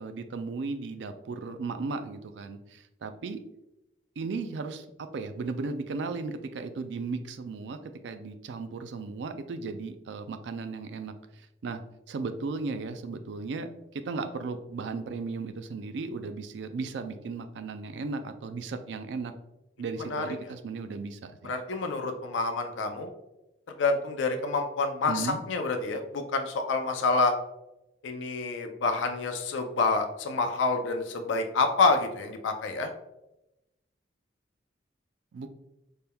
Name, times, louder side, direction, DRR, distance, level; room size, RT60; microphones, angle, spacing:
voice 1, 0.0-3.4 4.2-4.9 5.1-7.8 8.0-11.8 12.1-19.3 19.8-21.5 25.1-25.4 35.3-35.5, right 4 dB, 70° right, 8 dB, 0.4 m, -36 dB
voice 2, 21.4-23.1 23.8-27.3 28.0-32.9, left 3 dB, 85° left, 5 dB, 0.4 m, -28 dB
4.2 x 3.4 x 2.2 m, 0.91 s
head